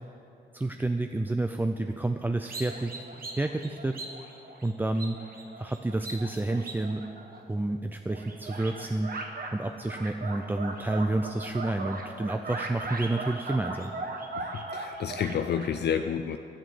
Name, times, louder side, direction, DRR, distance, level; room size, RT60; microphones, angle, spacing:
voice 1, 0.5-4.0 4.6-5.2 5.6-7.0 7.5-13.9, right 2 dB, 10° right, 6 dB, 0.4 m, -30 dB
sound 1, 2.5-7.7 8.1-9.5 9.9-15.7, right 2 dB, 55° right, 1.3 m, -39 dB
voice 2, 14.7-16.4, left 8 dB, 70° left, 7 dB, 0.5 m, -29 dB
11.5 x 8.9 x 7.6 m, 2.6 s
wide cardioid pair, 140°, 18 cm